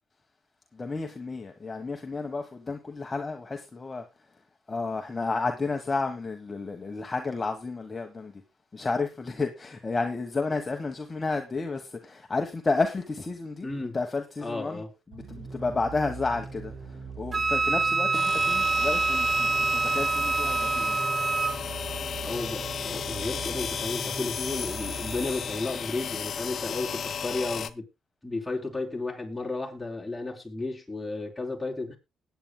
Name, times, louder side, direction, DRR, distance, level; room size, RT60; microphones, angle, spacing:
voice 1, 0.7-4.1 4.7-8.4 8.7-21.0, left 3 dB, 25° left, 1.2 m, -31 dB
voice 2, 13.6-14.0 14.4-14.9 22.2-27.8 28.2-32.0, left 2 dB, 5° left, 3.4 m, -33 dB
sound 1, 15.1-25.8, right 5 dB, 60° right, 4.6 m, -41 dB
Wind instrument woodwind instrument, 17.3-21.6, right 3 dB, 35° right, 0.6 m, -25 dB
sound 2, 18.1-27.7, left 7 dB, 55° left, 0.8 m, -34 dB
20.0 x 9.3 x 2.2 m
cardioid pair, 90°, 0 cm